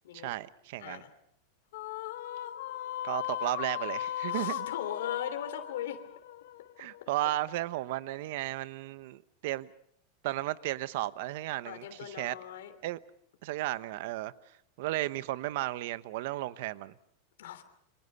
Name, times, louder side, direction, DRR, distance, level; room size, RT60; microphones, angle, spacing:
voice 1, 0.1-1.0 3.0-4.7 6.8-9.7 10.2-12.3 12.8-13.0 13.4-14.3 14.8-16.9, right 16 dB, 55° right, 0.9 m, -34 dB
voice 2, 0.8-1.1 4.3-6.0 11.6-12.7 17.4-17.6, left 10 dB, 85° left, 3.0 m, -39 dB
sound 1, 1.7-7.2, left 12 dB, 65° left, 1.0 m, -37 dB
28.5 x 26.0 x 5.6 m
supercardioid pair, 170°, 0 cm